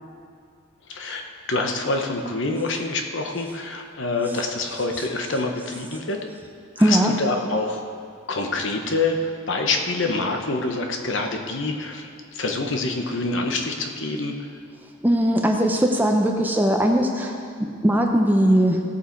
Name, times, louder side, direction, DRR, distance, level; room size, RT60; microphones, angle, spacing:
voice 1, 0.9-1.2 1.5-6.2 6.8-7.8 8.3-9.2 9.5-14.3, left 3 dB, 65° left, 3 dB, 1.1 m, -26 dB
voice 2, 6.8-7.2 15.0-18.8, right 1 dB, 10° right, 2 dB, 0.7 m, -20 dB
17.0 x 7.1 x 4.6 m, 2.3 s
head